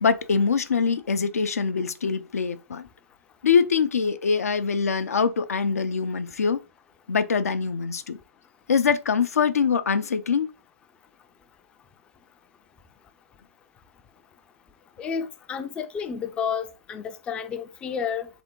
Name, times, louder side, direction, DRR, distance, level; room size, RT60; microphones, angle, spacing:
voice 1, 0.0-2.9 3.4-6.6 7.1-8.2 8.7-10.5, left 5 dB, 90° left, 0.5 m, -23 dB
voice 2, 15.0-18.3, left 7 dB, 10° left, 0.3 m, -31 dB
3.6 x 3.4 x 3.8 m
hypercardioid pair, 140°, 8 cm